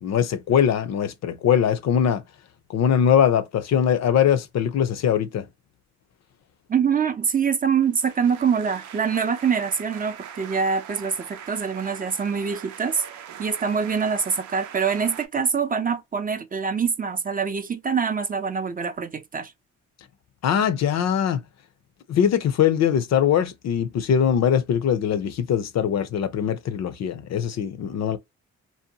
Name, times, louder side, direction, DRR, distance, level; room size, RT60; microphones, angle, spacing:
voice 1, 0.0-2.2 2.7-5.5 20.4-21.4 22.1-28.2, left 8 dB, 65° left, 0.5 m, -21 dB
voice 2, 6.7-13.0 13.4-19.5, right 6 dB, 30° right, 0.4 m, -24 dB
sound 1, 7.8-15.3, right 9 dB, 75° right, 0.6 m, -42 dB
2.7 x 2.1 x 2.7 m
cardioid pair, 70°, 29 cm